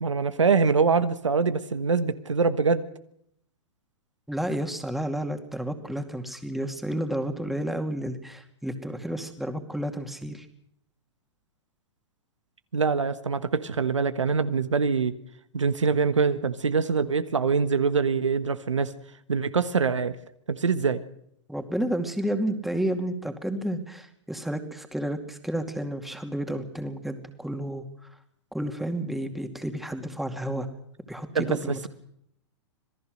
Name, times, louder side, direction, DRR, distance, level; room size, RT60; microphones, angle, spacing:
voice 1, 0.0-2.8 12.7-15.1 15.5-18.9 19.3-20.1 20.5-21.0 31.3-31.9, right 5 dB, 90° right, 11 dB, 1.3 m, -24 dB
voice 2, 4.3-10.5 21.5-27.9 28.5-30.7 31.1-31.9, right 1 dB, ahead, 6 dB, 2.3 m, -31 dB
26.5 x 17.5 x 6.5 m, 0.72 s
hypercardioid pair, 115°, 15 cm